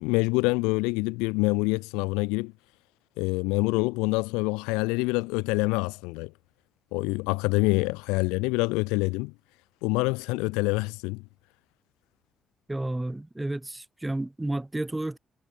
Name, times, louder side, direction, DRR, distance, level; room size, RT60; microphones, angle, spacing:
voice 1, 0.0-2.5 3.2-6.3 6.9-9.3 9.8-11.2, left 26 dB, 90° left, 3.3 m, -26 dB
voice 2, 12.7-15.2, right 1 dB, 15° right, 3.8 m, -31 dB
hypercardioid pair, 50°, 0 cm